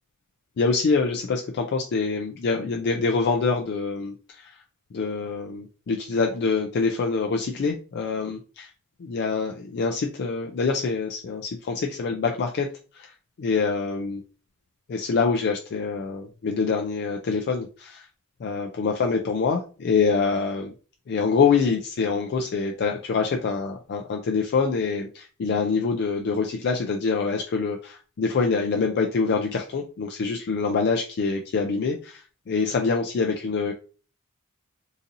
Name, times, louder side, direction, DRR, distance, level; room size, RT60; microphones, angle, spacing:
voice 1, 0.6-4.6 4.9-8.7 9.0-12.7 12.9-13.1 13.4-14.2 14.9-18.1 18.4-20.7 21.1-33.7, left 4 dB, 50° left, 2 dB, 0.4 m, -25 dB
3.9 x 2.7 x 2.5 m, 0.37 s
head